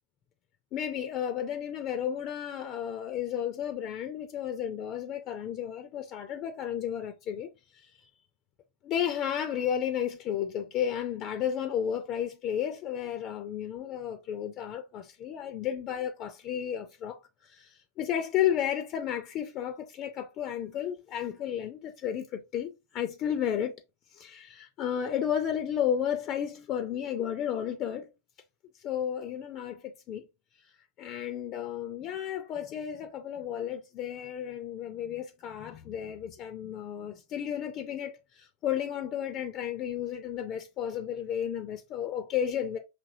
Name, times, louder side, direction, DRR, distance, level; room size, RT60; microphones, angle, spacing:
voice 1, 0.7-7.5 7.7-8.1 8.8-23.7 24.1-28.1 28.8-30.3 31.0-42.8, left 9 dB, 35° left, 0.6 m, -33 dB
6.0 x 2.9 x 2.7 m
figure-of-eight pair, 90°, 0 cm